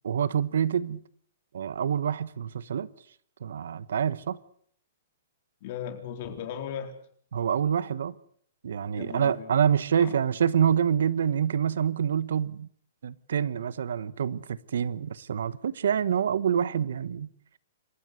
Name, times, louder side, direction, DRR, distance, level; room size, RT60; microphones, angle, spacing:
voice 1, 0.0-1.0 1.5-2.9 3.4-4.4 7.3-8.1 8.6-12.7 13.0-17.3, right 8 dB, 75° right, 1.2 m, -26 dB
voice 2, 5.6-6.9 8.9-9.5 10.0-10.1, left 8 dB, 40° left, 4.2 m, -37 dB
27.5 x 14.5 x 8.1 m
hypercardioid pair, 165°, 0 cm